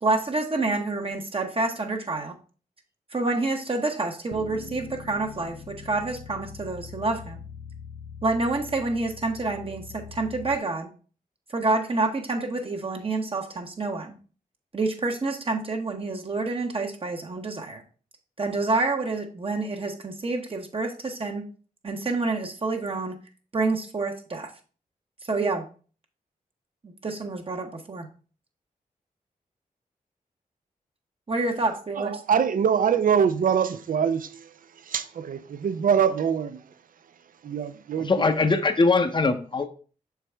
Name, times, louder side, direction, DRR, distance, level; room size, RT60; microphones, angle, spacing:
voice 1, 0.0-2.3 3.1-7.4 8.2-10.9 11.5-14.1 14.7-17.8 18.4-21.4 21.8-23.1 23.5-24.5 25.3-25.6 27.0-28.1 31.3-32.1, right 3 dB, 40° right, 0.9 m, -28 dB
sound 1, 4.3-10.6, left 6 dB, 90° left, 0.6 m, -42 dB
voice 2, 32.0-34.5 34.9-36.6 37.4-38.1, right 7 dB, 70° right, 0.5 m, -24 dB
voice 3, 38.0-39.7, left 3 dB, 30° left, 0.7 m, -21 dB
6.1 x 4.6 x 3.4 m
cardioid pair, 80°, 15 cm